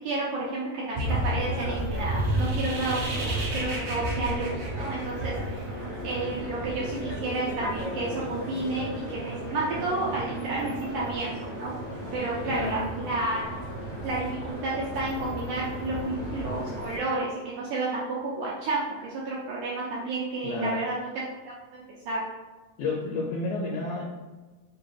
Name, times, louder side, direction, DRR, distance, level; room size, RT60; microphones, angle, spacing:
voice 1, 0.0-5.7 6.0-11.7 12.1-13.5 14.0-21.2 21.7-22.2, right 2 dB, 80° right, -6 dB, 1.8 m, -31 dB
sound 1, 0.9-17.0, right 1 dB, 45° right, 1.4 m, -33 dB
sound 2, 2.0-5.6, right 2 dB, 65° right, 2.5 m, -37 dB
voice 2, 12.4-12.8 20.4-20.8 22.8-24.1, left 3 dB, 80° left, -3 dB, 1.8 m, -30 dB
5.8 x 2.2 x 3.2 m, 1.3 s
omnidirectional pair, 4.1 m